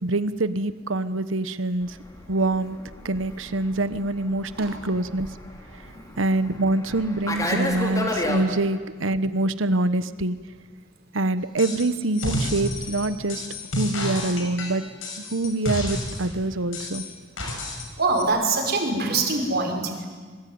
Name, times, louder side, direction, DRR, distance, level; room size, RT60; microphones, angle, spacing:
voice 1, 0.0-1.9 2.3-2.8 3.0-5.3 6.2-10.3 11.1-13.4 13.8-14.8 15.3-17.0, right 2 dB, 85° right, 13 dB, 1.1 m, -25 dB
Fixed-wing aircraft airplane, 1.9-8.4, left 1 dB, 20° left, 3.7 m, -32 dB
sound 1, 11.6-11.9 12.2-16.3 16.7-17.9 18.2-18.3, left 1 dB, 90° left, 6.3 m, -30 dB
voice 2, 18.0-20.1, right 3 dB, 55° right, 3 dB, 5.4 m, -24 dB
26.5 x 23.5 x 9.5 m, 1.5 s
head